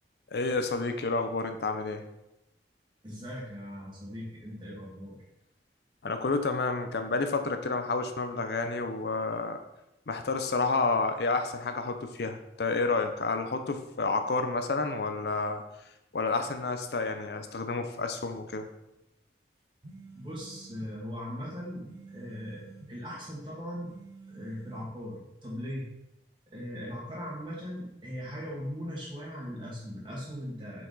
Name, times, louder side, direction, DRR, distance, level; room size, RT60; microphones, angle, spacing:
voice 1, 0.3-2.0 6.0-9.6 10.1-15.6 16.1-18.7, left 3 dB, 65° left, 7 dB, 0.5 m, -30 dB
voice 2, 3.0-5.2 20.1-23.9 24.3-25.9 26.5-30.9, equal, 25° right, -5 dB, 2.0 m, -39 dB
sound 1, 19.8-20.9 21.8-22.9 23.8-24.9, right 3 dB, 75° right, 1.3 m, -49 dB
6.3 x 4.7 x 3.9 m, 0.88 s
head